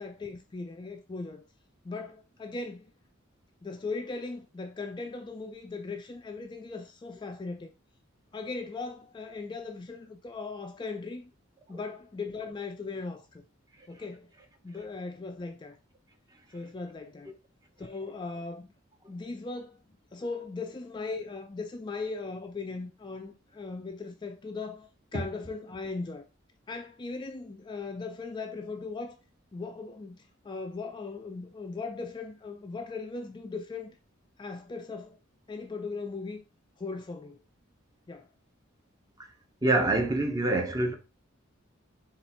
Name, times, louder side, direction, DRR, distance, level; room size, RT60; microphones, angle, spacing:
voice 1, 0.0-1.4 1.8-2.9 3.6-7.7 8.3-11.3 11.7-13.4 13.9-14.3 14.6-15.8 16.5-17.4 17.8-18.7 19.1-19.8 20.1-26.3 26.7-29.2 29.5-34.0 34.4-35.2 35.5-36.4 36.8-37.4 38.1-38.3, left 3 dB, 20° left, 0.3 m, -38 dB
voice 2, 39.6-40.9, right 2 dB, 20° right, 0.7 m, -26 dB
4.2 x 2.4 x 4.3 m
head